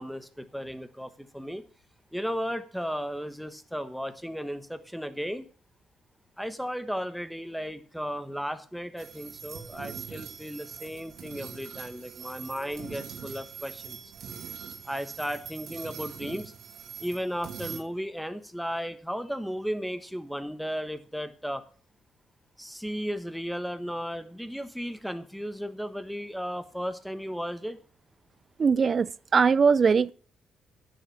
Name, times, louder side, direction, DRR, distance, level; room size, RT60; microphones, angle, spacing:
voice 1, 0.0-1.6 2.1-5.5 6.4-14.1 14.8-16.5 17.0-21.6 22.6-27.8, equal, ahead, 1.3 m, -35 dB
sound 1, 9.0-17.8, right 7 dB, 70° right, 2.1 m, -42 dB
voice 2, 28.6-30.1, right 5 dB, 40° right, 0.5 m, -21 dB
10.0 x 7.0 x 6.0 m
cardioid pair, 90°, 0 cm